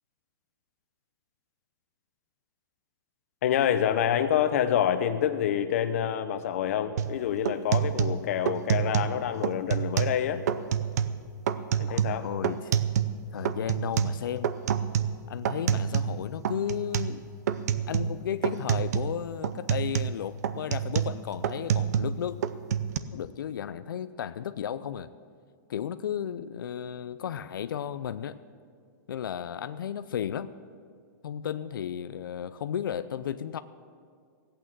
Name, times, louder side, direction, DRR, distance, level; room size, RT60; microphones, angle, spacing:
voice 1, 3.4-10.4 11.8-12.3, left 9 dB, 45° left, 9 dB, 0.8 m, -27 dB
sound 1, 7.0-7.2 7.5-9.2 9.4-10.2 10.5-11.2 11.5-13.2 13.5-16.2 16.4-17.2 17.5-18.2 18.4-19.1 19.4-22.2 22.4-23.0, right 8 dB, 55° right, 0.6 m, -27 dB
voice 2, 11.9-12.7 13.3-14.5 15.3-17.3 17.9-22.4 23.1-25.1 25.7-28.4 29.1-30.5 31.2-33.6, left 9 dB, 90° left, 12 dB, 0.5 m, -34 dB
16.0 x 8.8 x 7.4 m, 2.1 s
hypercardioid pair, 175°, 11 cm